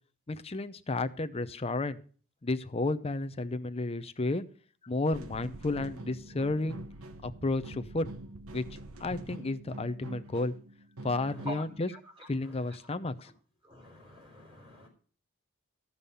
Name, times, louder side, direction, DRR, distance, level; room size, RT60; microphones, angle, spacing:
voice 1, 0.3-2.0 2.4-4.4 4.8-6.8 7.2-8.1 8.5-8.6 9.0-10.5 11.0-11.9 12.3-13.3, left 2 dB, 25° left, 0.6 m, -32 dB
sound 1, 5.1-11.8, right 2 dB, 80° right, 1.0 m, -45 dB
voice 2, 11.2-11.6 11.9-12.3 12.6-12.8 13.6-14.9, equal, 25° right, 3.8 m, -45 dB
14.5 x 5.5 x 6.8 m
head